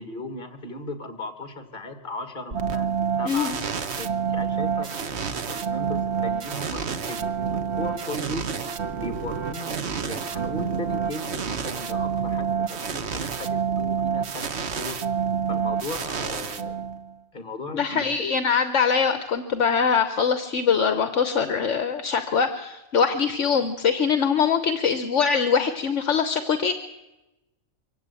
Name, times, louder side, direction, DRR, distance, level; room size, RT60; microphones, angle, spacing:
voice 1, 0.0-3.6 3.9-6.8 7.1-8.5 8.9-15.0 15.5-16.9 17.3-18.0, left 1 dB, 40° left, 7 dB, 2.4 m, -37 dB
sound 1, 2.5-17.1, right 7 dB, 55° right, 1.3 m, -28 dB
voice 2, 17.7-26.7, left 6 dB, 65° left, 9 dB, 1.4 m, -23 dB
24.0 x 16.5 x 8.4 m, 1.0 s
omnidirectional pair, 1.4 m